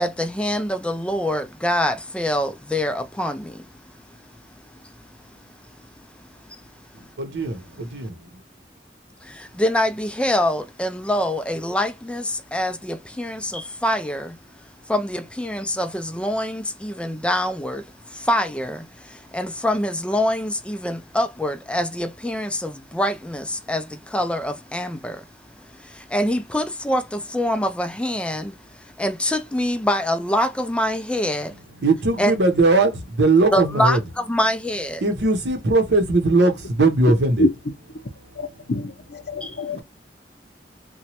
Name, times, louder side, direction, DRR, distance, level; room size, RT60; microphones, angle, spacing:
voice 1, 0.0-3.7 4.7-4.9 6.5-6.6 9.2-14.4 14.9-25.3 25.6-31.6 32.2-32.3 33.5-35.0 39.4-39.6, left 1 dB, 5° left, 0.4 m, -25 dB
voice 2, 7.2-7.6 7.9-8.1 31.8-32.9 33.2-34.0 35.0-37.5, right 2 dB, 70° right, 0.7 m, -19 dB
voice 3, 38.4-39.8, left 1 dB, 65° left, 0.6 m, -25 dB
3.0 x 2.2 x 2.8 m
head